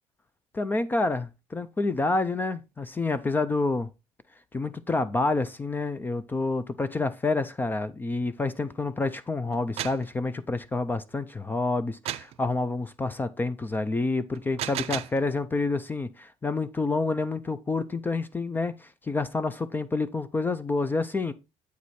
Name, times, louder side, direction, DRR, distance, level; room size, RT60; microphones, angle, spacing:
voice 1, 0.5-3.9 4.5-21.3, left 3 dB, 15° left, 0.4 m, -28 dB
sound 1, 9.5-10.1 12.1-12.4 14.4-15.2, right 13 dB, 50° right, 0.4 m, -33 dB
8.2 x 4.8 x 4.1 m
cardioid pair, 145°, 13 cm